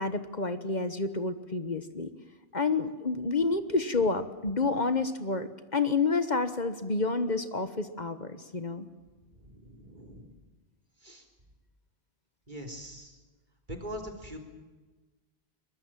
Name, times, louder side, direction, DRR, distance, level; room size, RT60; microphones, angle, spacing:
voice 1, 0.0-2.1 2.5-8.9, left 3 dB, 45° left, 10 dB, 1.4 m, -29 dB
voice 2, 9.4-10.3 11.0-11.2 12.5-13.2 13.7-14.4, equal, 45° right, 2 dB, 3.7 m, -42 dB
23.0 x 21.0 x 7.5 m, 1.3 s
omnidirectional pair, 1.1 m